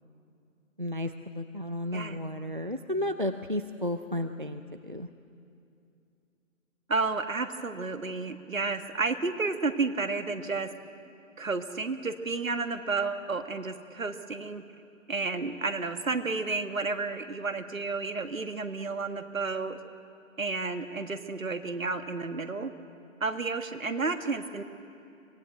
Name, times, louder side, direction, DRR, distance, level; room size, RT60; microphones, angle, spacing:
voice 1, 0.8-5.1, left 1 dB, 40° right, 8 dB, 0.5 m, -33 dB
voice 2, 6.9-10.7 11.4-14.6 15.1-19.8 20.4-22.7 23.2-24.6, right 3 dB, 70° right, 9 dB, 1.6 m, -31 dB
24.0 x 19.0 x 7.8 m, 2.6 s
figure-of-eight pair, 175°, 41 cm